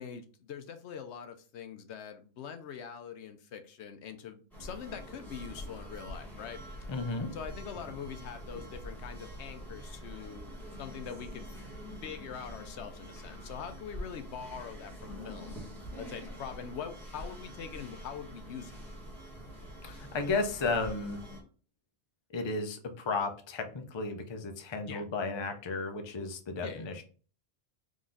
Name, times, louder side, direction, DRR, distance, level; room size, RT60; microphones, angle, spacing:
voice 1, 0.0-6.6 7.3-11.5 12.0-15.6 16.0-18.8 24.9-25.0 26.6-26.9, left 7 dB, 75° left, 8 dB, 0.9 m, -43 dB
sound 1, 4.5-21.4, equal, ahead, 1.3 m, -45 dB
voice 2, 6.9-7.3 19.8-21.2 22.3-27.0, left 3 dB, 30° left, 5 dB, 0.5 m, -34 dB
3.9 x 3.0 x 3.8 m, 0.39 s
omnidirectional pair, 1.2 m